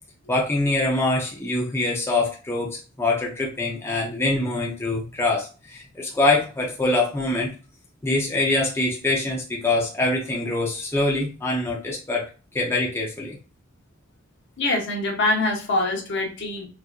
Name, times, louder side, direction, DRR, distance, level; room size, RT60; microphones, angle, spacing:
voice 1, 0.3-7.5 8.0-12.2 12.5-13.4, left 2 dB, 10° left, -3 dB, 0.6 m, -24 dB
voice 2, 14.6-16.7, left 2 dB, 55° left, 1 dB, 0.9 m, -24 dB
4.6 x 2.5 x 2.4 m, 0.35 s
head